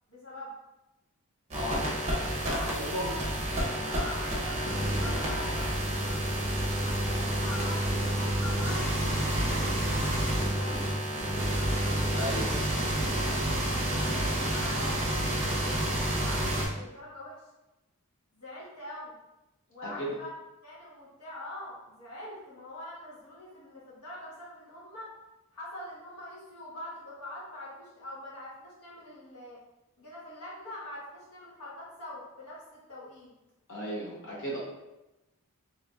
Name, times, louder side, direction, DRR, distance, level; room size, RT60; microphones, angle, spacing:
voice 1, 0.1-0.5 2.4-3.2 3.8-6.2 6.8-11.4 13.5-17.4 18.3-19.1 19.7-20.3 20.6-25.1 25.5-29.6 30.0-33.3, left 1 dB, 85° left, -7 dB, 1.3 m, -44 dB
voice 2, 1.5-1.8 2.7-3.1 12.1-12.6 19.8-20.1 33.7-34.6, equal, 60° left, -5 dB, 1.0 m, -34 dB
sound 1, 1.5-16.7, right 1 dB, 30° right, 0.8 m, -29 dB
3.8 x 3.0 x 2.4 m, 0.97 s
head